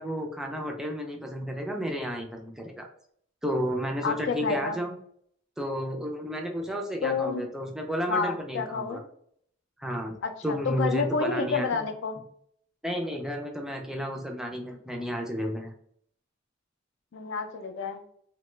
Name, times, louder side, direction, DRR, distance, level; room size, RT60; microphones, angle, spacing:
voice 1, 0.0-2.9 3.4-5.0 5.6-9.0 9.8-10.2 10.4-11.7 12.8-15.7, equal, 5° right, 2 dB, 0.3 m, -32 dB
voice 2, 4.0-4.8 7.0-7.4 8.1-9.0 10.2-12.2 17.1-18.0, left 4 dB, 65° left, 6 dB, 0.4 m, -29 dB
2.8 x 2.2 x 3.0 m, 0.64 s
head